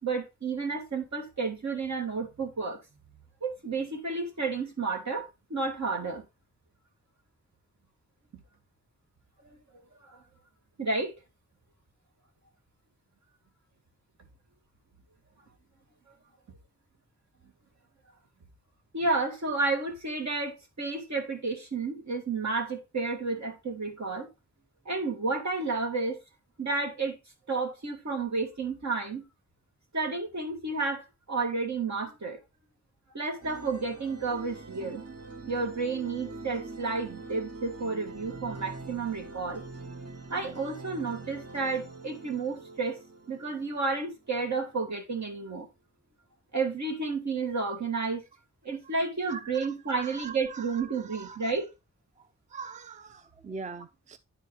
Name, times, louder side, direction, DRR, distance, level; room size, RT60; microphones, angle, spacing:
voice 1, 0.0-2.8 3.4-6.2 9.4-9.6 10.1-10.2 10.8-11.1 16.1-16.2 18.9-24.3 24.9-26.2 26.6-27.2 27.5-29.3 29.9-32.4 33.1-35.0 35.5-39.6 40.3-43.0 43.3-45.7 46.5-48.2 48.6-51.7, right 4 dB, 70° right, 2.0 m, -31 dB
sound 1, 33.4-44.8, right 3 dB, 55° right, 1.2 m, -44 dB
voice 2, 49.3-49.7 49.9-51.5 52.2-54.2, right 5 dB, 25° right, 0.4 m, -43 dB
9.8 x 4.7 x 3.2 m
wide cardioid pair, 60°, 29 cm